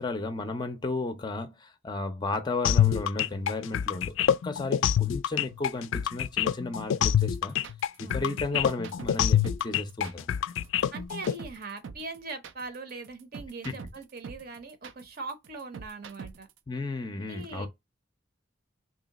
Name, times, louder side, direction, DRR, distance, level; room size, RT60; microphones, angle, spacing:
voice 1, 0.0-4.2 4.4-7.6 8.0-10.3 13.6-13.8 16.7-17.7, left 3 dB, 25° left, 0.4 m, -33 dB
sound 1, 2.6-11.3, left 9 dB, 90° left, 0.3 m, -25 dB
sound 2, 7.0-16.6, right 5 dB, 80° right, 0.4 m, -44 dB
voice 2, 8.0-8.4 10.9-16.5 17.2-17.7, right 3 dB, 50° right, 0.8 m, -41 dB
3.1 x 2.8 x 4.0 m
head